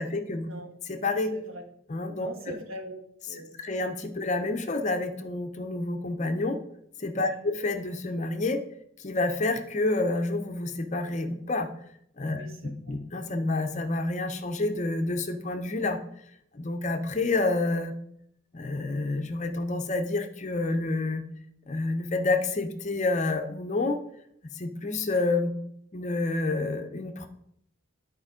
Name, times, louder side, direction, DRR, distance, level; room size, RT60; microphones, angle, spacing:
voice 1, 0.0-0.5 0.9-1.3 1.9-2.3 3.6-6.6 7.0-8.6 9.0-11.7 12.2-12.5 12.9-16.0 16.5-17.9 18.5-21.2 21.7-24.0 24.6-25.5 25.9-27.3, left 2 dB, 35° left, 6 dB, 0.7 m, -28 dB
voice 2, 1.3-1.6 2.2-2.9 3.3-3.5 7.2-7.4 12.2-13.0, right 1 dB, 70° right, 4 dB, 1.4 m, -42 dB
9.9 x 4.4 x 5.0 m, 0.72 s
head